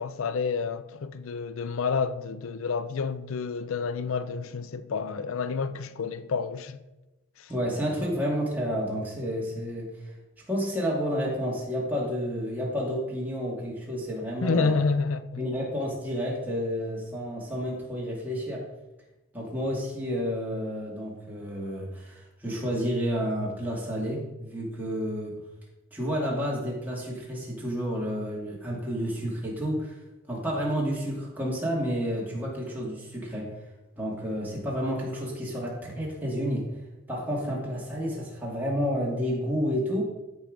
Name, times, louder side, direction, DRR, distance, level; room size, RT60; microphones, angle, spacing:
voice 1, 0.0-6.8 7.4-7.5 14.4-15.5, left 5 dB, 85° left, 0.5 m, -29 dB
voice 2, 7.5-10.1 10.5-14.8 15.4-18.6 19.3-25.4 25.9-30.0 30.3-33.5 34.0-36.7 37.1-40.0, equal, 10° right, 2.4 m, -30 dB
13.0 x 4.6 x 5.1 m
head